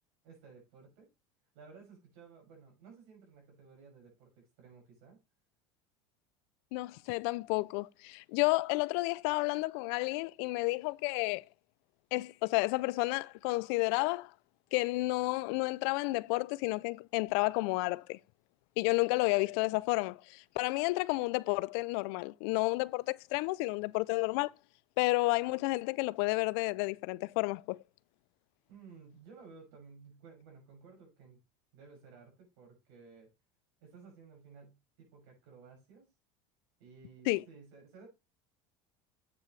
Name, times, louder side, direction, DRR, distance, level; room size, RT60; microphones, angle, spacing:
voice 1, 0.2-1.1 1.5-5.2 28.7-31.4 31.7-33.3 33.8-36.1 36.8-38.1, right 5 dB, 75° right, 6.2 m, -55 dB
voice 2, 6.7-11.4 12.1-14.3 14.7-18.2 18.8-24.5 25.0-27.8 37.3-37.4, left 23 dB, 75° left, 0.4 m, -31 dB
8.3 x 7.4 x 3.2 m
supercardioid pair, 110°, 14 cm